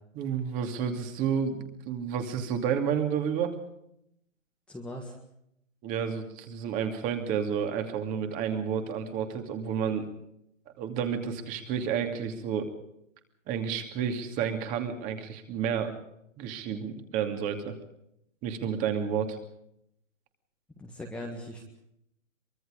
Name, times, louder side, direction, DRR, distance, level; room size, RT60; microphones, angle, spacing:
voice 1, 0.2-3.6 5.8-10.1 10.8-12.7 13.5-15.9 16.4-17.7 18.4-19.4, right 7 dB, 20° right, 6 dB, 2.6 m, -30 dB
voice 2, 4.7-5.1 20.8-21.6, left 1 dB, 5° left, -1 dB, 1.7 m, -39 dB
24.5 x 23.0 x 5.1 m, 0.77 s
hypercardioid pair, 155°, 39 cm